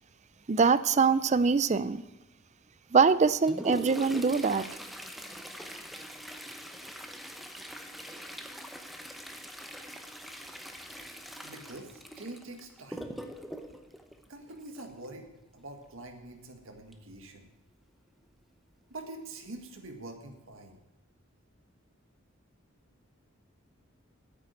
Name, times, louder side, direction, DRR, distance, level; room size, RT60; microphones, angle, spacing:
voice 1, 0.5-2.0 2.9-4.6, right 5 dB, 35° right, 15 dB, 0.4 m, -23 dB
Toilet flush, 3.1-15.0 16.9-17.0 17.4-17.5 18.2-18.3 19.0-19.2 19.7-19.8, equal, ahead, 0.8 m, -43 dB
voice 2, 11.4-13.2 14.3-15.3 15.5-17.5 18.9-20.8, right 2 dB, 70° right, 4 dB, 1.7 m, -45 dB
9.3 x 8.1 x 9.1 m, 0.96 s
head